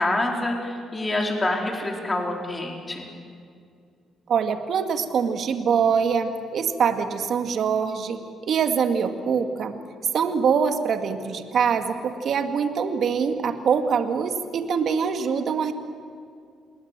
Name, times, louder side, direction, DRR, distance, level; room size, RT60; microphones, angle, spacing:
voice 1, 0.0-3.1, left 2 dB, 20° left, 1 dB, 4.3 m, -26 dB
voice 2, 4.3-8.2 8.5-9.7 10.1-15.7, right 6 dB, 60° right, 6 dB, 2.2 m, -24 dB
28.5 x 20.5 x 7.6 m, 2.3 s
cardioid pair, 90°, 0 cm